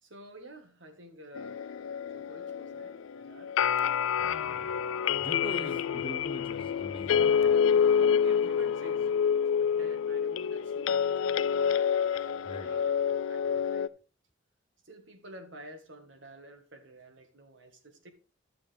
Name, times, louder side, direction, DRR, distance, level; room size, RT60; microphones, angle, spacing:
voice 1, 0.0-1.8 2.1-3.5 5.2-5.8 7.4-11.8 12.6-13.9 14.8-18.1, right 1 dB, 65° right, 1.6 m, -50 dB
sound 1, 1.4-13.9, left 7 dB, 75° left, 0.4 m, -28 dB
voice 2, 4.2-4.8 5.2-7.4 12.5-12.7, left 1 dB, 25° left, 0.7 m, -42 dB
12.5 x 6.8 x 3.4 m
head